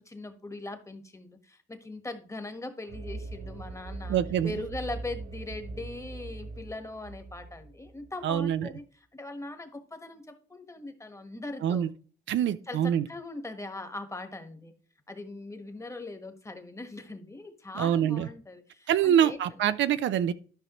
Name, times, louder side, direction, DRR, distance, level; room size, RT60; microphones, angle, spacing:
voice 1, 0.0-11.9 12.7-14.7 15.1-19.4, left 2 dB, 15° left, 1.4 m, -40 dB
sound 1, 2.9-8.5, right 3 dB, 50° right, 0.9 m, -41 dB
voice 2, 4.1-4.5 8.2-8.7 11.6-11.9 12.3-13.1 17.7-18.3 18.9-20.3, right 10 dB, 70° right, 0.5 m, -25 dB
12.5 x 5.6 x 3.1 m
cardioid pair, 90°, 20 cm